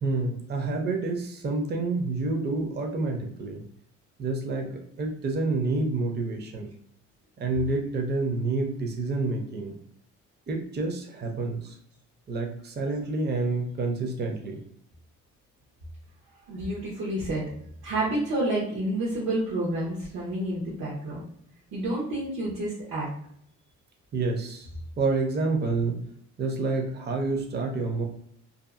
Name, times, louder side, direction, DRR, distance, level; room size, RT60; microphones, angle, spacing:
voice 1, 0.0-3.6 4.2-4.7 5.0-6.7 7.4-9.7 10.5-11.7 12.3-14.6 24.1-24.7 25.0-26.0 26.4-28.0, right 3 dB, 35° right, 2 dB, 0.6 m, -28 dB
voice 2, 16.5-17.4 17.8-21.2 21.7-23.1, right 1 dB, 85° right, -6 dB, 1.0 m, -29 dB
2.7 x 2.5 x 2.4 m, 0.66 s
cardioid pair, 90°, 30 cm